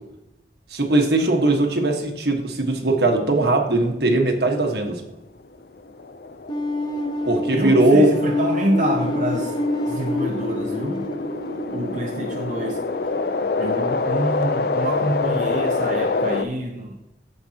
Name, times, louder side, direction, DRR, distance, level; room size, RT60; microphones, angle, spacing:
voice 1, 0.7-5.0 7.3-8.1, right 2 dB, 65° right, 3 dB, 1.5 m, -19 dB
sound 1, 5.6-16.4, left 3 dB, 60° left, 0.6 m, -27 dB
sound 2, 6.5-13.4, left 2 dB, 25° left, 0.9 m, -28 dB
voice 2, 7.5-9.5 9.9-11.1 11.7-12.8 13.6-17.0, right 1 dB, 45° right, 0 dB, 0.8 m, -26 dB
14.0 x 5.3 x 2.9 m, 0.93 s
head